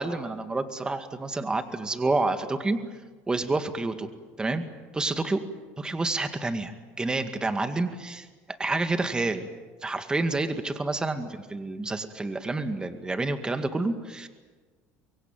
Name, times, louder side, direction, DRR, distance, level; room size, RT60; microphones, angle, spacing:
voice 1, 0.0-2.8 3.3-4.1 4.4-4.6 4.9-5.4 5.8-6.7 7.0-8.3 8.6-9.4 9.8-14.3, right 2 dB, 15° right, 8 dB, 2.0 m, -28 dB
24.5 x 23.0 x 9.2 m, 1.4 s
supercardioid pair, 120°, 6 cm